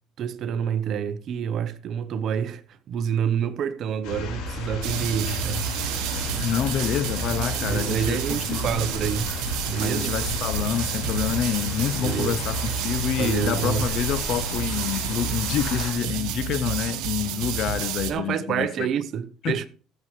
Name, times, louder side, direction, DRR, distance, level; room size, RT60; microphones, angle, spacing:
voice 1, 0.2-2.6 2.9-5.7 7.5-9.3 9.7-10.2 12.0-12.4 13.2-13.9 18.1-19.7, right 8 dB, 55° right, 0.9 m, -28 dB
sound 1, 4.0-15.9, left 3 dB, 85° left, 4.6 m, -34 dB
sound 2, 4.8-18.1, right 7 dB, 80° right, 1.2 m, -29 dB
voice 2, 6.4-8.9 9.8-18.9 19.4-19.7, left 10 dB, 60° left, 0.5 m, -28 dB
15.0 x 7.3 x 3.2 m
cardioid pair, 115°, 0 cm